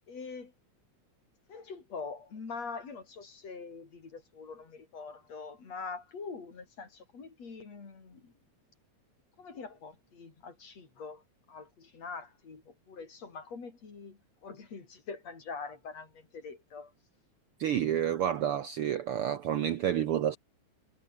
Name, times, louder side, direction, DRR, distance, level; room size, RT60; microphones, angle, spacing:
voice 1, 0.1-0.5 1.5-8.3 9.4-11.2 11.5-16.9, left 4 dB, 55° left, 5.4 m, -44 dB
voice 2, 17.6-20.4, right 10 dB, 70° right, 1.4 m, -29 dB
omnidirectional pair, 3.5 m